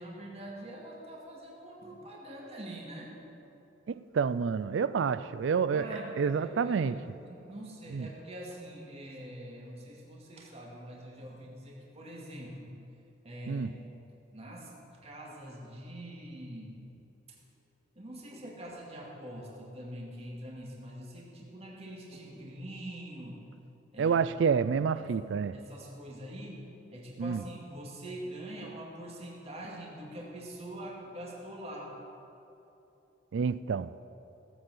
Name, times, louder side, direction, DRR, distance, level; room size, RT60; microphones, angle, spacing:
voice 1, 0.0-3.1 5.7-12.7 13.2-14.0 14.3-14.7 15.0-17.0 18.0-23.4 23.9-24.4 24.9-25.2 25.5-31.9, right 1 dB, 35° right, 2.4 m, -44 dB
voice 2, 3.9-5.9 6.2-7.0 7.9-8.1 13.5-13.7 24.0-25.6 27.2-27.4 33.3-33.9, right 6 dB, 70° right, 0.4 m, -28 dB
16.5 x 8.0 x 7.8 m
head